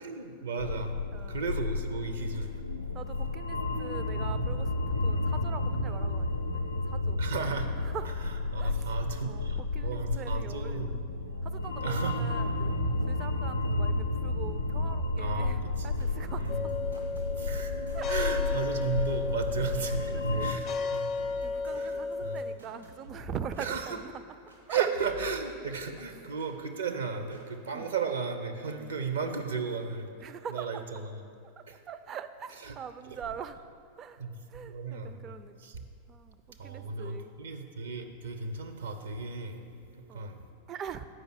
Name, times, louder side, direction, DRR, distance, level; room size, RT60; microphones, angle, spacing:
voice 1, 0.0-0.9 1.3-2.6 7.2-7.7 8.5-10.9 11.8-12.2 13.4-13.6 15.2-15.9 16.4-16.6 17.4-17.7 18.1-21.1 21.7-22.4 23.6-24.0 24.7-30.1 30.5-31.2 31.7-31.8 32.6-32.7 33.1-33.2 34.2-34.3 34.6-35.2 35.6-35.8 36.6-40.4, right 5 dB, 65° right, 6 dB, 0.6 m, -35 dB
sound 1, 0.6-20.5, left 2 dB, 85° left, 0.4 m, -32 dB
voice 2, 1.1-1.5 2.9-7.2 7.8-8.2 8.6-8.9 9.2-11.0 11.4-12.7 13.0-17.1 17.9-18.3 19.6-19.9 20.1-20.5 20.8-21.0 21.4-24.2 24.7-24.9 25.2-25.3 27.7-27.8 28.8-29.0 30.2-30.8 31.6-33.6 34.0-34.2 34.5-35.6 36.1-37.3 40.1-40.3 40.7-41.1, right 7 dB, 30° right, 11 dB, 0.4 m, -43 dB
sound 2, 15.5-24.7 24.9-26.5 27.3-27.4, left 4 dB, 85° right, 1.7 m, -50 dB
sound 3, 16.5-22.5, left 4 dB, 30° left, 0.4 m, -34 dB
7.8 x 5.2 x 6.1 m, 2.5 s
figure-of-eight pair, 90°, 0 cm